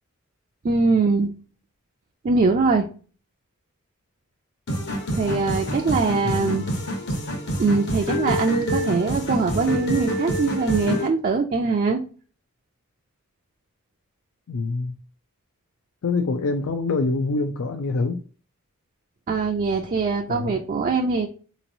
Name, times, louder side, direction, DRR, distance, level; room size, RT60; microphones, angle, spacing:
voice 1, 0.6-1.3 2.2-2.9 5.1-6.7 7.6-12.0 19.3-21.3, right 4 dB, 40° right, 2 dB, 0.4 m, -22 dB
sound 1, 4.7-11.1, equal, 55° left, 0.9 m, -27 dB
voice 2, 6.2-6.7 14.5-14.9 16.0-18.2 20.3-20.6, left 3 dB, 75° left, 5 dB, 0.4 m, -25 dB
3.9 x 3.0 x 2.6 m, 0.38 s
head